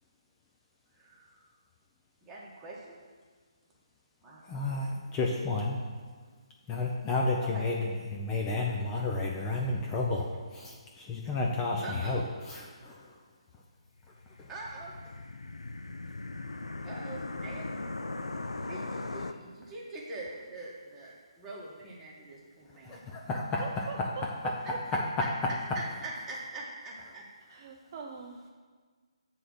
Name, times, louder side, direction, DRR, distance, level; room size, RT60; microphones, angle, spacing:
voice 1, 0.9-1.4 2.2-3.0 4.2-4.4 7.4-7.6 11.8-12.2 14.5-14.9 16.8-17.7 18.7-23.0 25.2-25.3 25.7-27.2, right 2 dB, 10° right, -5 dB, 1.5 m, -43 dB
voice 2, 4.5-5.8 6.7-7.8 8.1-10.3 10.5-12.2 12.5-13.1 14.4-14.5 22.8-24.3, left 3 dB, 15° left, -2 dB, 0.6 m, -31 dB
sound 1, 14.1-19.3, left 2 dB, 80° left, 0.5 m, -39 dB
voice 3, 23.6-24.8 27.5-28.5, right 5 dB, 35° right, 2 dB, 0.5 m, -42 dB
7.7 x 3.7 x 6.2 m, 1.5 s
figure-of-eight pair, 140°, 3 cm